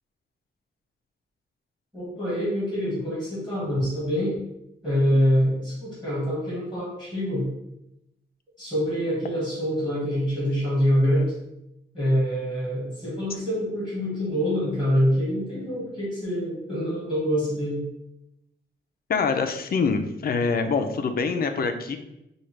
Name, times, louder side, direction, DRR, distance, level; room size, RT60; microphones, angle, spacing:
voice 1, 1.9-4.4 4.8-7.5 8.6-11.3 11.9-17.8, equal, ahead, -8 dB, 1.4 m, -25 dB
voice 2, 19.1-22.0, left 5 dB, 50° left, 6 dB, 0.4 m, -25 dB
5.8 x 2.3 x 3.2 m, 0.87 s
wide cardioid pair, 165°, 20 cm